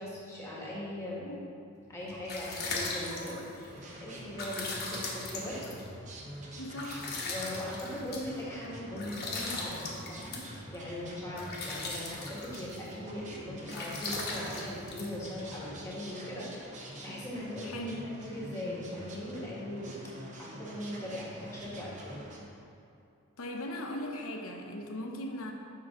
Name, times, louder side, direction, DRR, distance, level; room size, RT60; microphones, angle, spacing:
voice 1, 0.0-1.3 1.9-3.7 4.0-5.6 7.2-17.9 18.2-22.3, left 1 dB, 15° left, -6 dB, 1.5 m, -40 dB
sound 1, 1.8-15.8, left 2 dB, 45° left, 1.1 m, -40 dB
sound 2, 3.7-22.4, right 1 dB, 35° right, 0.9 m, -46 dB
voice 2, 6.6-7.0 17.6-18.0 23.4-25.5, left 1 dB, 70° left, 2 dB, 0.8 m, -38 dB
7.1 x 5.7 x 3.7 m, 2.6 s
head